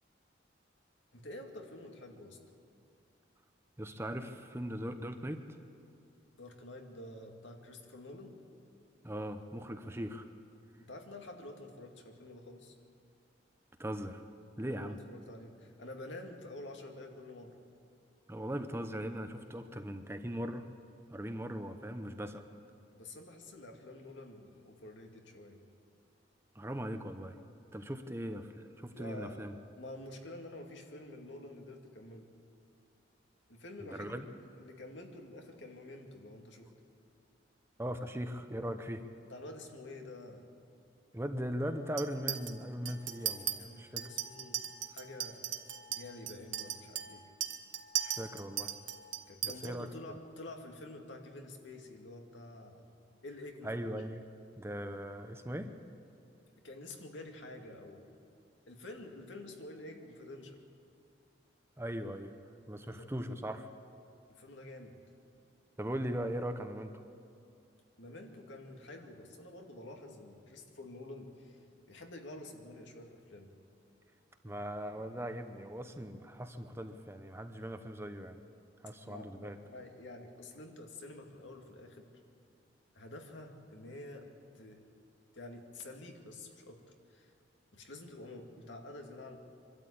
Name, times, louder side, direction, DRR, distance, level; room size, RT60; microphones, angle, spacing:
voice 1, 1.1-2.4 6.4-8.4 10.8-12.8 14.7-17.6 22.9-25.6 28.9-32.3 33.5-36.7 39.3-40.5 43.6-45.5 45.9-47.3 49.3-52.9 53.2-53.9 56.6-58.2 58.7-60.6 62.9-63.1 64.3-65.0 68.0-71.6 71.9-73.5 74.4-74.6 74.9-75.0 79.1-82.1 82.9-84.3 84.5-84.9 85.3-86.8 87.1-87.3 87.7-89.4, left 2 dB, 70° left, 3 dB, 2.2 m, -48 dB
voice 2, 3.8-5.4 9.0-10.3 13.8-14.2 14.6-15.0 18.3-20.7 21.1-22.4 26.5-27.4 27.7-29.5 33.9-34.3 37.8-39.0 41.1-44.0 48.0-48.7 49.4-49.9 53.6-54.2 54.6-55.8 61.8-62.4 62.7-63.7 65.8-67.0 74.4-78.4 78.8-79.6, equal, 15° right, 7 dB, 0.8 m, -39 dB
Chink clink, 42.0-42.5 42.9-43.5 44.0-49.7, right 10 dB, 70° right, 1.3 m, -37 dB
24.5 x 12.5 x 8.5 m, 2.4 s
head